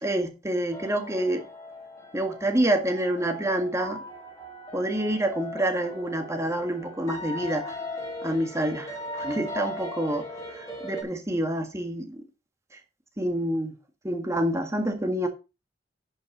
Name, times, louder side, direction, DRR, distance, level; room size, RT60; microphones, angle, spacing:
voice 1, 0.0-1.4 2.1-4.0 4.7-7.7 8.2-10.3 10.6-12.2 13.2-13.7 14.0-15.3, right 1 dB, 15° right, 1.7 m, -27 dB
sound 1, 0.7-11.0, left 1 dB, 20° left, 3.1 m, -38 dB
10.5 x 5.6 x 5.3 m
head